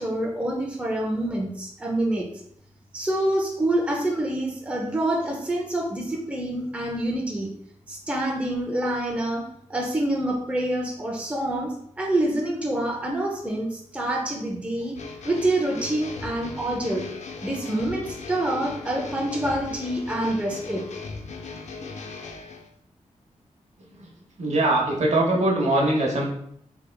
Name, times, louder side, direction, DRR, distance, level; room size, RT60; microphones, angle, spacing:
voice 1, 0.0-2.3 2.9-7.5 7.9-15.0 15.2-17.1 17.4-20.8, right 1 dB, 10° right, -1 dB, 0.5 m, -26 dB
sound 1, 14.9-22.7, left 4 dB, 70° left, 0.4 m, -38 dB
voice 2, 24.4-26.3, right 2 dB, 65° right, -2 dB, 0.8 m, -21 dB
3.3 x 3.3 x 2.2 m, 0.69 s
wide cardioid pair, 130°, 12 cm